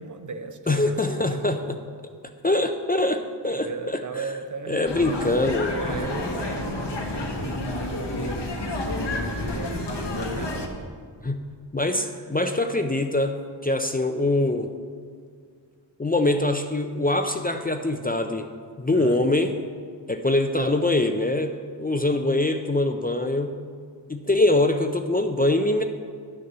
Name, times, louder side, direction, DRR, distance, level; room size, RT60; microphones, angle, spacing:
voice 1, 0.0-1.7 3.5-5.0 5.7-10.9 11.9-12.3 18.9-19.2, right 4 dB, 45° right, 7 dB, 0.8 m, -37 dB
voice 2, 0.7-1.8 2.4-4.3 4.7-5.7 11.2-11.4 11.7-14.7 16.0-18.5 18.8-19.5 20.1-23.6 24.1-25.8, left 2 dB, 20° left, 6 dB, 0.5 m, -23 dB
sound 1, 4.9-10.7, left 1 dB, 70° left, 1.4 m, -29 dB
10.5 x 6.6 x 6.8 m, 2.1 s
wide cardioid pair, 120°, 44 cm